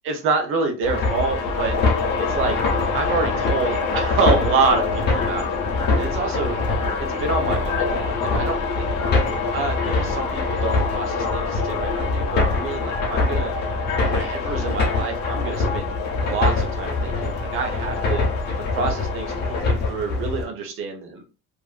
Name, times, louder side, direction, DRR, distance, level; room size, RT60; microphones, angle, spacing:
voice 1, 0.0-1.8 2.2-2.6 2.9-5.5 6.0-6.6 7.0-8.9 9.5-13.6 14.1-18.2 18.7-21.2, right 4 dB, 45° right, 4 dB, 0.7 m, -27 dB
sound 1, 0.8-20.4, left 3 dB, 35° left, 0.6 m, -25 dB
sound 2, 0.9-19.6, left 5 dB, 90° left, 0.7 m, -28 dB
2.6 x 2.5 x 2.4 m, 0.33 s
cardioid pair, 165°, 29 cm